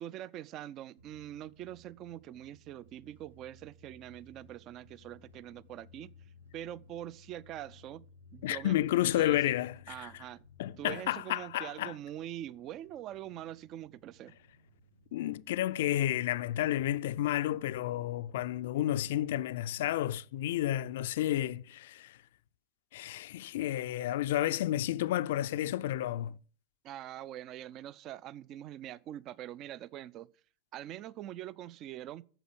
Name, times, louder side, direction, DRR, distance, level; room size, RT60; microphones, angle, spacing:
voice 1, 0.0-6.1 6.5-8.0 8.3-9.5 9.9-10.4 10.8-14.4 26.8-30.3 30.7-32.2, right 12 dB, 35° right, 0.4 m, -44 dB
sound 1, 1.0-18.8, left 2 dB, 75° right, 1.1 m, -60 dB
voice 2, 8.4-10.1 10.6-11.9 15.1-22.2 22.9-26.4, left 13 dB, 55° left, 0.4 m, -31 dB
9.0 x 7.4 x 6.6 m
figure-of-eight pair, 90°, 0 cm